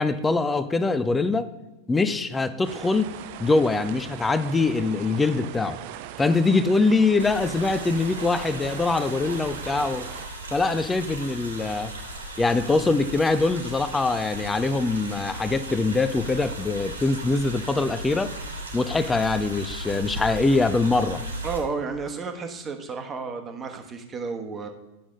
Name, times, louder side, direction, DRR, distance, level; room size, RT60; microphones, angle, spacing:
voice 1, 0.0-1.5 1.9-3.1 3.4-5.8 6.2-10.1 10.5-11.9 12.4-18.3 18.7-21.2, left 3 dB, 10° left, 12 dB, 0.6 m, -23 dB
sound 1, 2.6-10.3, right 12 dB, 50° right, 0.5 m, -40 dB
sound 2, 7.2-21.6, right 1 dB, 80° right, 1.6 m, -37 dB
voice 2, 21.4-24.7, right 4 dB, 20° right, 5 dB, 1.2 m, -32 dB
10.0 x 6.2 x 5.2 m, 1.0 s
figure-of-eight pair, 90°, 0 cm